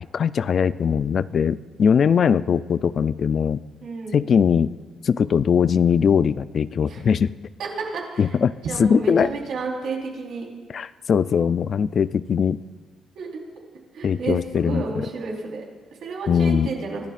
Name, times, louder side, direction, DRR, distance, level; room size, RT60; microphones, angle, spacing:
voice 1, 0.1-3.6 4.1-4.7 5.0-7.3 8.2-8.5 8.8-9.3 10.7-12.6 14.0-15.1 16.3-16.7, left 7 dB, 50° left, 16 dB, 0.4 m, -20 dB
voice 2, 3.8-4.2 6.9-7.0 7.9-8.3 8.6-10.5 13.1-13.3 13.9-15.6 16.0-17.0, right 4 dB, 70° right, -2 dB, 4.0 m, -31 dB
25.0 x 13.0 x 2.5 m, 1.4 s
cardioid pair, 90°, 0 cm